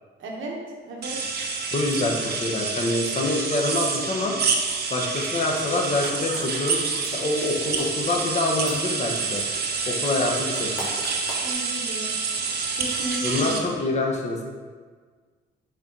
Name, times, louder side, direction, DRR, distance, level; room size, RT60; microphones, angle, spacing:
voice 1, 0.2-0.6 0.8-1.2 11.4-12.1 12.8-13.6, right 2 dB, 75° right, -1 dB, 1.3 m, -34 dB
sound 1, 1.0-13.6, right 4 dB, 55° right, 0.9 m, -28 dB
voice 2, 1.7-4.3 4.9-6.8 7.1-9.4 9.9-10.9 13.2-14.4, left 2 dB, 35° left, 0 dB, 1.1 m, -26 dB
sound 2, 5.8-6.4 6.7-6.8 7.0-7.1 7.4-7.5 7.8-7.9 8.2-8.3 8.7-8.8 10.6-11.5, left 2 dB, 80° left, 1.6 m, -37 dB
8.0 x 3.1 x 4.0 m, 1.5 s
cardioid pair, 90°, 20 cm